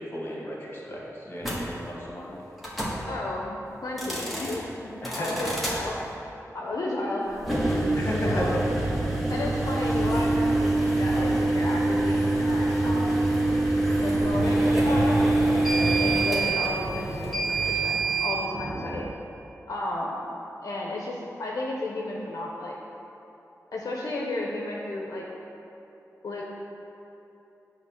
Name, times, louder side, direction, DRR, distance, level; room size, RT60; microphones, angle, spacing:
voice 1, 0.0-2.4 5.0-5.4 7.9-8.8, equal, 35° left, -4 dB, 1.7 m, -33 dB
sound 1, 1.4-1.6 2.6-3.0 3.9-4.6 5.0-5.8 7.4-18.4, right 2 dB, ahead, 1.3 m, -25 dB
voice 2, 3.1-4.9 5.2-6.0 6.5-8.5 9.3-13.2 14.0-19.0 19.7-20.2 20.6-22.8 23.7-25.2 26.2-26.4, left 2 dB, 75° left, -3 dB, 0.7 m, -33 dB
sound 2, 11.2-19.1, right 2 dB, 25° right, 0.4 m, -39 dB
7.9 x 3.3 x 6.4 m, 2.9 s
wide cardioid pair, 110°, 6 cm